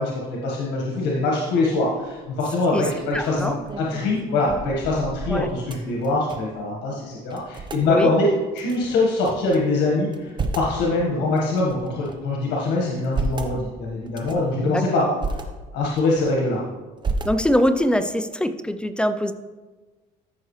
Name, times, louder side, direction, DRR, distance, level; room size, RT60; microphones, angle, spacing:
voice 1, 0.0-8.3 8.5-15.1 15.7-16.6, left 2 dB, 90° left, -2 dB, 1.5 m, -23 dB
sound 1, 2.0-2.4 2.9-6.6 6.9-7.0 7.3-7.8 8.5-9.6 10.0-10.8 11.4-12.3 12.8-13.5 14.1-14.5 15.0-15.4 15.9-16.6 17.0-17.7, right 3 dB, 25° right, 0.9 m, -32 dB
voice 2, 3.1-3.6 5.3-5.5 7.9-8.1 14.6-15.1 17.2-19.3, equal, 5° left, 10 dB, 0.5 m, -23 dB
13.5 x 6.0 x 3.2 m, 1.2 s
cardioid pair, 110°, 17 cm